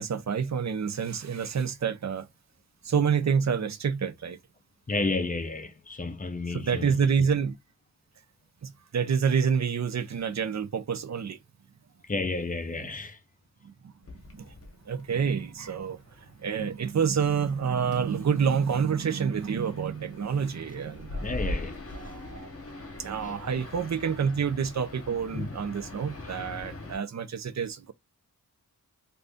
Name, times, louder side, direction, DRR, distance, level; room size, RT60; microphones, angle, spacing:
voice 1, 0.0-2.3 2.8-4.4 6.5-7.6 8.6-11.4 12.8-12.9 13.6-13.9 14.3-14.5 14.9-16.0 16.4-21.4 21.9-22.5 23.0-27.9, right 6 dB, 50° right, 0.5 m, -28 dB
voice 2, 4.9-6.9 12.1-13.2 21.2-21.8 23.2-23.3 25.3-25.6, left 3 dB, 25° left, 0.6 m, -31 dB
sound 1, 14.0-27.0, left 2 dB, 40° left, 0.9 m, -42 dB
2.6 x 2.5 x 3.4 m
wide cardioid pair, 75°, 36 cm